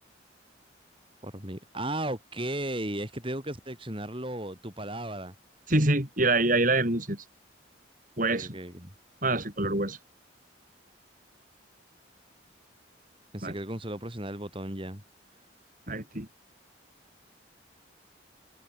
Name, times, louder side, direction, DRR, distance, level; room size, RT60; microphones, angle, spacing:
voice 1, 1.2-5.3 8.3-8.9 13.3-15.0, right 1 dB, 25° right, 5.2 m, -35 dB
voice 2, 5.7-7.2 8.2-8.6 9.2-10.0 13.4-13.6 15.9-16.3, right 2 dB, 45° right, 6.3 m, -26 dB
open air
head